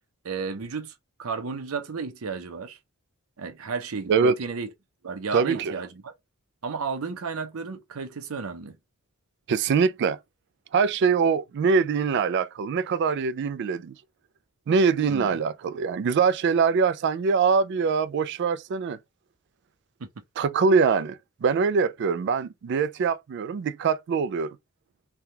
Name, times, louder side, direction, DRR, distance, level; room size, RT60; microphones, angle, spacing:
voice 1, 0.2-0.9 1.2-2.8 3.4-4.7 5.0-6.1 6.6-8.8 15.1-15.4 20.0-20.1, right 5 dB, 90° right, 0.7 m, -33 dB
voice 2, 5.3-5.7 9.5-10.2 10.7-13.9 14.7-19.0 20.4-24.6, right 5 dB, 55° right, 0.3 m, -23 dB
3.4 x 2.2 x 2.7 m
head